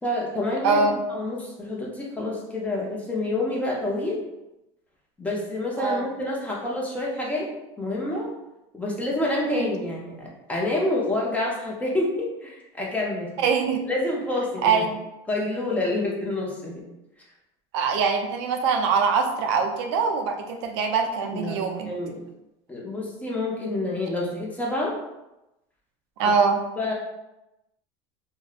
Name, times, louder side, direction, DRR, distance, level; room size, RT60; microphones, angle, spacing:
voice 1, 0.0-4.2 5.2-7.5 7.8-8.3 8.7-13.4 13.9-14.9 15.3-16.8 21.3-22.2 22.7-24.9 26.2-26.3 26.8-26.9, left 2 dB, 10° left, -3 dB, 0.6 m, -28 dB
voice 2, 0.6-1.0 5.8-6.1 9.5-9.7 13.4-13.8 14.6-15.0 17.7-21.9 26.2-26.6, right 5 dB, 85° right, 4 dB, 0.4 m, -23 dB
2.6 x 2.0 x 2.4 m, 0.93 s
supercardioid pair, 120°, 14 cm